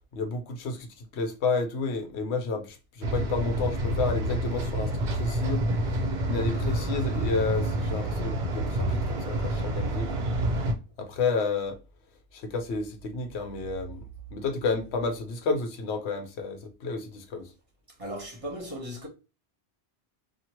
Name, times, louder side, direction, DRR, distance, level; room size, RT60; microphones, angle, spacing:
voice 1, 0.1-0.9 1.1-5.6 6.2-10.1 11.0-11.8 12.4-14.0 14.3-17.5, left 4 dB, 80° left, 0.9 m, -31 dB
sound 1, 3.0-10.7, right 1 dB, 55° right, 0.7 m, -28 dB
voice 2, 18.0-19.1, equal, 30° right, 1.1 m, -36 dB
2.8 x 2.4 x 2.9 m
omnidirectional pair, 1.1 m